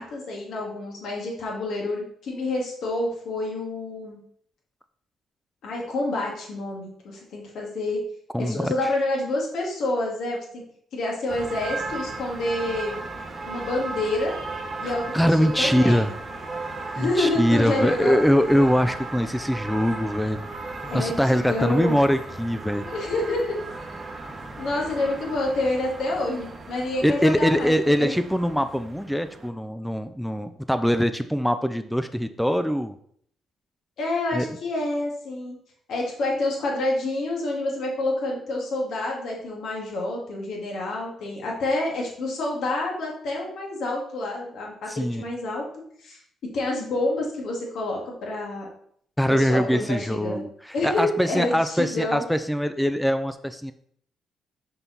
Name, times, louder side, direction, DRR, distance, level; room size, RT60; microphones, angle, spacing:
voice 1, 0.0-4.2 5.6-8.0 8.4-10.6 10.9-13.0 13.4-14.3 14.8-16.0 16.9-18.2 20.9-22.0 22.8-23.6 24.6-27.7 28.0-28.1 34.0-35.6 35.9-45.7 46.0-46.2 46.5-48.7 49.3-50.5 50.7-52.2, left 2 dB, 70° left, -1 dB, 1.9 m, -28 dB
voice 2, 8.3-8.9 15.1-16.1 17.0-20.5 20.8-22.8 27.0-32.9 34.3-34.5 44.9-45.2 49.2-53.7, equal, ahead, 10 dB, 0.4 m, -23 dB
sound 1, 11.3-29.5, right 2 dB, 35° right, 0.9 m, -36 dB
5.6 x 4.4 x 4.0 m, 0.63 s
cardioid pair, 90°, 0 cm